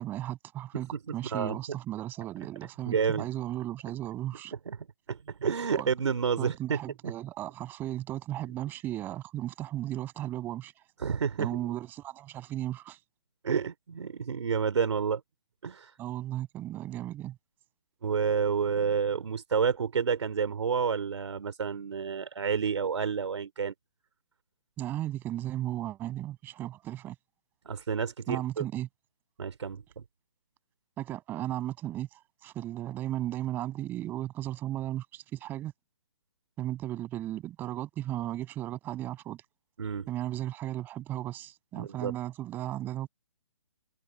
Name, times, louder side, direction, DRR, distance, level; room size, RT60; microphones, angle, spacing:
voice 1, 0.0-4.5 5.7-5.9 6.4-10.7 11.4-13.0 16.0-17.4 24.8-27.1 28.3-28.9 31.0-35.7 36.6-39.4 40.1-43.1, right 13 dB, 10° right, 7.8 m, -35 dB
voice 2, 2.9-3.3 4.7-7.1 11.0-11.7 13.4-15.2 15.6-15.9 18.0-23.7 27.6-28.7 29.4-30.0 39.8-40.1 41.8-42.1, right 6 dB, 65° right, 3.0 m, -30 dB
hypercardioid pair, 170°, 16 cm